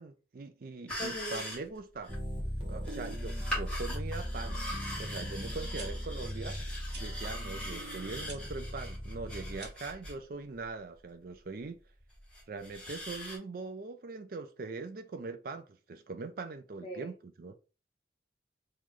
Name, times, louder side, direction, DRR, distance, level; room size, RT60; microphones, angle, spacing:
voice 1, 0.0-2.1 2.7-4.7 5.0-6.6 7.0-11.8 12.5-17.5, right 3 dB, 50° right, 0.4 m, -42 dB
sound 1, 0.9-2.2 2.8-10.2 10.6-10.7 12.0-13.4, left 1 dB, 5° left, 1.8 m, -42 dB
voice 2, 1.0-1.4 16.8-17.1, right 1 dB, 30° left, 0.5 m, -40 dB
sound 2, 2.1-9.6, equal, 30° right, 1.0 m, -38 dB
sound 3, 5.7-5.9 6.9-7.1 8.2-8.4 9.5-9.9, right 4 dB, 75° right, 1.1 m, -48 dB
3.2 x 3.1 x 3.6 m
head